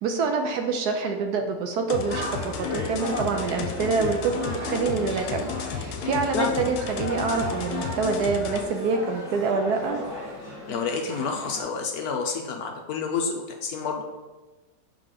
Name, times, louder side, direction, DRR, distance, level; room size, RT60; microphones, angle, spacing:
voice 1, 0.0-10.0, right 4 dB, 70° right, 5 dB, 1.0 m, -26 dB
sound 1, 1.9-8.7, left 7 dB, 85° left, 1.3 m, -33 dB
sound 2, 2.1-11.6, equal, 10° right, 2.1 m, -36 dB
voice 2, 10.7-14.0, left 5 dB, 65° left, 2 dB, 1.0 m, -29 dB
5.8 x 3.9 x 4.9 m, 1.2 s
omnidirectional pair, 2.0 m